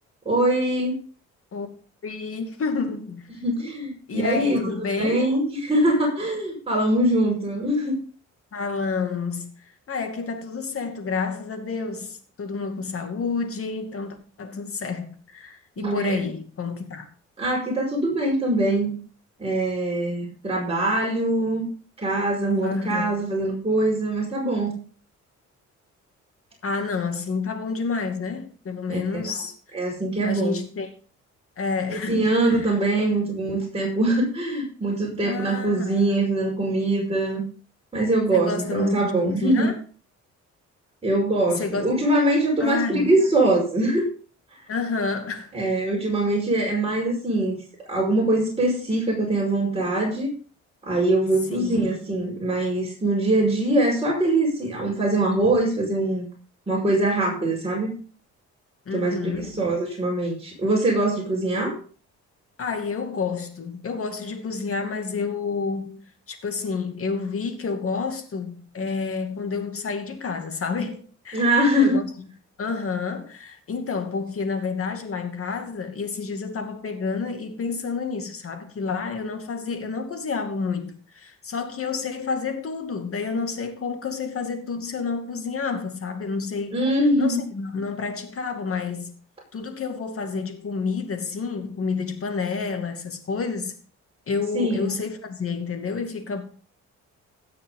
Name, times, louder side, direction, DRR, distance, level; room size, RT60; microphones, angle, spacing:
voice 1, 0.3-1.0 3.4-8.0 15.8-16.3 17.4-19.0 19.4-21.6 22.0-24.8 28.9-29.2 29.7-30.6 31.9-37.4 37.9-39.7 41.0-44.0 45.5-47.6 47.9-50.3 50.8-56.3 56.7-57.9 58.9-61.8 71.3-72.0 86.7-87.4 94.5-94.9, right 1 dB, 20° right, 5.3 m, -23 dB
voice 2, 2.0-3.3 4.1-5.3 8.5-17.1 22.6-23.2 26.6-29.5 30.2-30.9 31.6-32.7 35.2-35.9 38.3-39.7 41.5-41.8 42.6-43.1 44.7-45.5 51.5-52.0 58.9-59.5 62.6-72.1 72.6-86.8 87.2-89.1 89.5-93.7 94.3-96.4, left 4 dB, 50° left, 2.5 m, -29 dB
16.5 x 6.5 x 3.9 m
cardioid pair, 90°, 30 cm